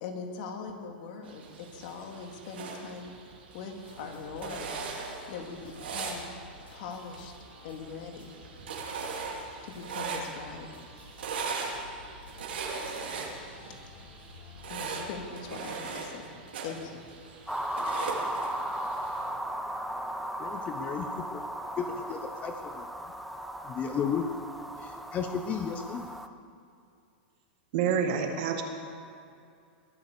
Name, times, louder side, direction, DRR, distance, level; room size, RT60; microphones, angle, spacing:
voice 1, 0.0-3.1 3.5-4.7 5.3-6.3 6.7-7.3 7.6-8.3 9.6-10.7 14.7-16.3 16.6-17.0, left 5 dB, 55° left, 3 dB, 2.4 m, -41 dB
sound 1, 1.3-19.3, right 4 dB, 85° right, 3.2 m, -40 dB
sound 2, 3.8-16.0, left 3 dB, 85° left, 3.3 m, -52 dB
sound 3, 17.5-26.3, right 1 dB, ahead, 0.7 m, -36 dB
voice 2, 20.4-21.4 21.8-22.9 23.6-24.3 24.8-26.1, left 7 dB, 25° left, 6 dB, 0.9 m, -34 dB
voice 3, 27.7-28.6, right 7 dB, 55° right, 4 dB, 2.2 m, -27 dB
21.0 x 8.7 x 6.9 m, 2.5 s
hypercardioid pair, 135°, 5 cm